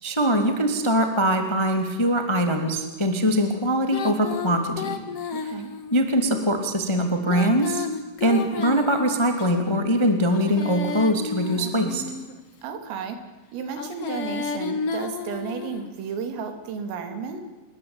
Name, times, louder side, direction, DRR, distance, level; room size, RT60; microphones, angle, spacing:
voice 1, 0.0-5.0 5.4-5.5 5.9-7.9 8.2-12.0, equal, 10° left, 5 dB, 1.4 m, -22 dB
Female singing, 3.9-6.0 7.1-9.5 10.2-12.4 13.7-15.9, left 5 dB, 75° left, 1.3 m, -32 dB
voice 2, 5.3-5.7 8.2-8.6 12.6-13.2 13.5-17.4, right 6 dB, 80° right, 7 dB, 5.7 m, -33 dB
28.5 x 22.0 x 8.9 m, 1.1 s
omnidirectional pair, 5.9 m